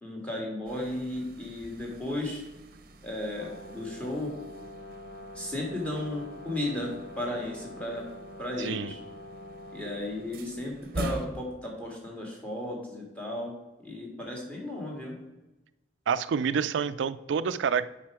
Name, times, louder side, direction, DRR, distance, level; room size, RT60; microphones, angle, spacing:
voice 1, 0.0-2.4 3.0-4.3 5.3-8.0 8.4-9.0 9.7-13.5 13.8-15.2, left 1 dB, 5° left, -1 dB, 1.8 m, -34 dB
sound 1, 0.6-11.3, right 1 dB, 50° right, 0.8 m, -44 dB
Brass instrument, 3.3-10.3, left 1 dB, 65° left, 1.1 m, -45 dB
voice 2, 8.6-8.9 16.1-17.9, right 6 dB, 90° right, 15 dB, 0.4 m, -28 dB
7.4 x 5.1 x 4.8 m, 1.0 s
head